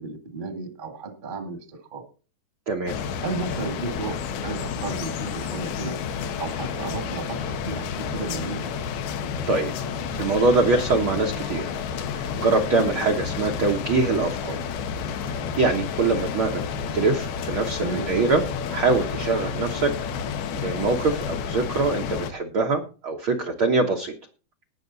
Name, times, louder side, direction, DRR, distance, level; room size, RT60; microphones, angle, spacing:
voice 1, 0.0-1.6 1.9-2.0 3.2-5.9 6.4-8.6 17.8-18.2, right 4 dB, 25° right, 6 dB, 1.0 m, -33 dB
sound 1, 2.9-22.3, left 6 dB, 90° left, 3.1 m, -30 dB
voice 2, 10.2-11.7 12.1-14.6 15.3-16.6 16.9-18.4 18.7-19.9 20.5-24.1, right 3 dB, 70° right, 2 dB, 1.2 m, -23 dB
19.5 x 6.6 x 4.0 m, 0.35 s
omnidirectional pair, 4.3 m